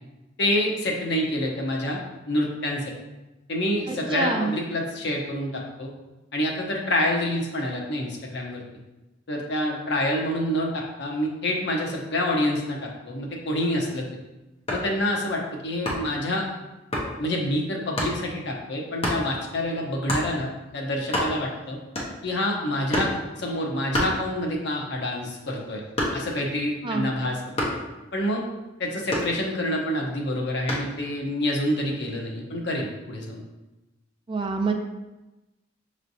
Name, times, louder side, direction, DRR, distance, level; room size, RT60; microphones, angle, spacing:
voice 1, 0.4-2.0 2.3-2.8 3.5-5.9 6.3-8.6 9.3-14.1 14.7-16.5 17.2-21.8 22.2-23.1 23.4-25.8 26.1-27.4 28.1-28.4 28.8-33.4, left 1 dB, 65° left, -1 dB, 0.8 m, -27 dB
voice 2, 3.9-4.5 26.8-27.1 34.3-34.7, right 4 dB, 25° right, 3 dB, 0.4 m, -26 dB
sound 1, 14.5-15.0 15.8-16.2 16.9-17.1 18.0-18.2 19.0-19.3 20.1-20.3 20.7-20.8 21.0-21.6 21.9-22.4 22.9-23.2 23.9-24.7 25.1-26.4 27.6-27.9 29.1-29.8 30.7-31.0, left 1 dB, 30° left, 0.9 m, -28 dB
6.2 x 3.2 x 2.7 m, 1.0 s
head